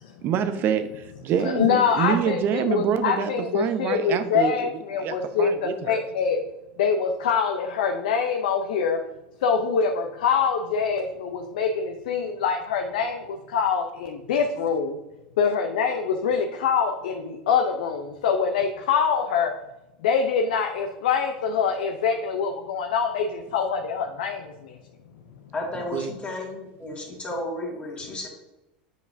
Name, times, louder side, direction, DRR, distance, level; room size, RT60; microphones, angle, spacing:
voice 1, 0.2-4.7 5.0-6.0 25.9-26.1, right 8 dB, 50° right, 9 dB, 0.8 m, -26 dB
voice 2, 1.4-6.4 6.8-9.0 9.4-15.0 15.4-19.5 20.0-24.8, left 6 dB, 75° left, 3 dB, 0.6 m, -24 dB
voice 3, 25.5-28.3, left 1 dB, 25° left, -2 dB, 2.0 m, -33 dB
7.9 x 4.8 x 2.7 m, 0.96 s
hypercardioid pair, 90°, 5 cm